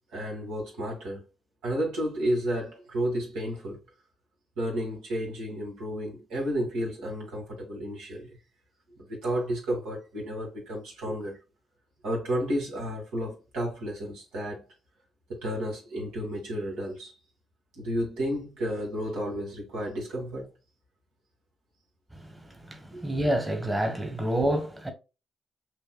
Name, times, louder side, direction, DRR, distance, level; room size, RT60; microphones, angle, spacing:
voice 1, 0.1-1.2 1.6-3.8 4.6-8.4 9.0-11.4 12.0-14.6 15.3-17.1 17.7-20.5 22.9-23.0, equal, 80° right, 1.9 m, -32 dB
voice 2, 22.1-24.9, right 1 dB, 15° right, 1.3 m, -28 dB
6.8 x 2.6 x 2.3 m
hypercardioid pair, 50°, 0 cm